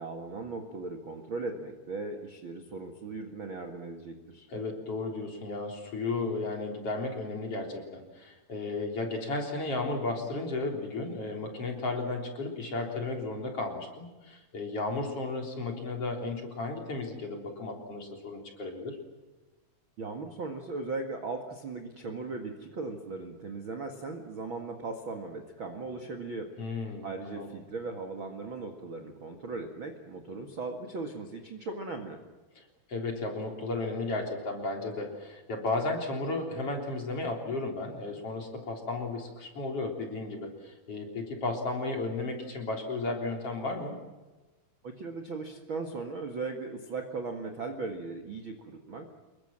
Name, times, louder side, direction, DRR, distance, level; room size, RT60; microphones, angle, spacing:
voice 1, 0.0-4.5 20.0-26.5 27.0-32.2 44.8-49.1, right 3 dB, 40° right, 4 dB, 1.9 m, -38 dB
voice 2, 4.5-19.0 26.6-27.5 32.6-44.0, left 3 dB, 35° left, 2 dB, 4.4 m, -34 dB
28.0 x 22.5 x 7.5 m, 1.2 s
omnidirectional pair, 4.7 m